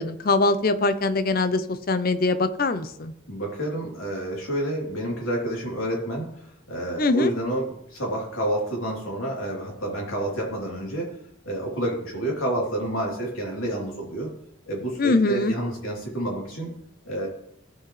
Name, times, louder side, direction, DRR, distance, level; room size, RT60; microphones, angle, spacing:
voice 1, 0.0-3.1 7.0-7.3 15.0-15.5, left 3 dB, 45° left, 11 dB, 0.6 m, -22 dB
voice 2, 3.3-11.2 11.4-14.3 14.7-16.7 17.0-17.3, right 1 dB, 85° left, -2 dB, 3.2 m, -29 dB
15.5 x 5.9 x 3.2 m, 0.77 s
head